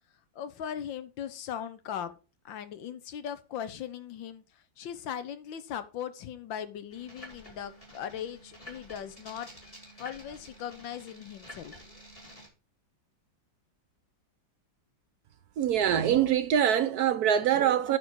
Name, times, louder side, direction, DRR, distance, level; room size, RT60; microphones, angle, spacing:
voice 1, 0.3-2.2 2.4-4.4 4.8-11.7, left 9 dB, 85° left, 1.6 m, -39 dB
sound 1, 6.9-12.5, equal, 15° left, 3.0 m, -50 dB
voice 2, 15.6-18.0, right 9 dB, 65° right, 1.0 m, -24 dB
9.1 x 4.2 x 6.3 m
omnidirectional pair, 2.0 m